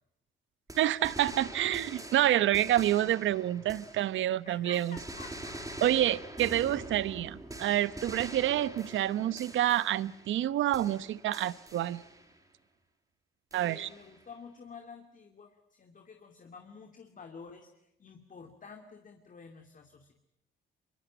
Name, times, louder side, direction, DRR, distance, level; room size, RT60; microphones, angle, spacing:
sound 1, 0.7-4.4 4.7-10.5 10.7-12.4 13.5-14.2, right 1 dB, 15° right, 6.0 m, -45 dB
voice 1, 0.8-5.0 5.8-12.0 13.5-13.9, right 13 dB, 75° right, 17 dB, 0.9 m, -28 dB
voice 2, 4.5-5.6 13.5-20.1, left 5 dB, 40° left, 4 dB, 2.6 m, -50 dB
24.0 x 22.5 x 9.1 m, 0.83 s
cardioid pair, 90°, 20 cm